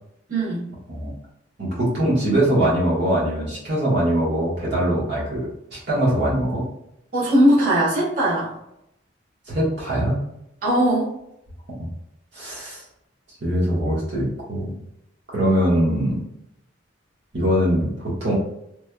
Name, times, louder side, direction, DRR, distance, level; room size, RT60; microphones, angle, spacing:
voice 1, 0.3-0.7 7.1-8.5 10.6-11.1, right 1 dB, 50° right, -8 dB, 1.3 m, -19 dB
voice 2, 1.6-6.6 9.5-10.2 11.8-11.9 12.3-12.8 13.4-14.7 15.3-16.2 17.3-18.3, right 1 dB, 65° right, -7 dB, 1.4 m, -22 dB
3.3 x 3.2 x 2.2 m, 0.80 s
head